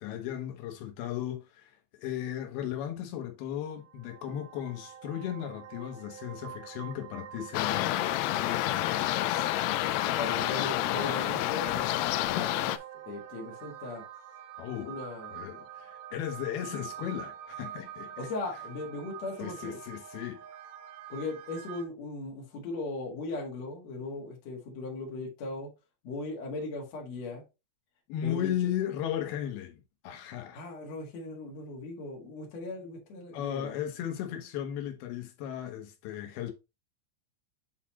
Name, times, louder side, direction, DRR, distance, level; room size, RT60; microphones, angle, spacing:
voice 1, 0.0-9.5 14.6-15.0 15.3-18.3 19.4-20.4 28.1-30.6 33.3-36.5, left 10 dB, 70° left, 2.6 m, -36 dB
sound 1, 3.7-21.9, right 10 dB, 80° right, 2.2 m, -46 dB
sound 2, 7.5-12.8, left 15 dB, 85° left, 2.3 m, -29 dB
voice 2, 10.0-12.8 13.1-14.0 14.8-15.3 18.2-19.8 21.1-25.7 26.0-27.4 28.2-28.5 30.5-33.7, left 2 dB, 50° left, 2.3 m, -38 dB
8.6 x 4.1 x 3.0 m
omnidirectional pair, 5.2 m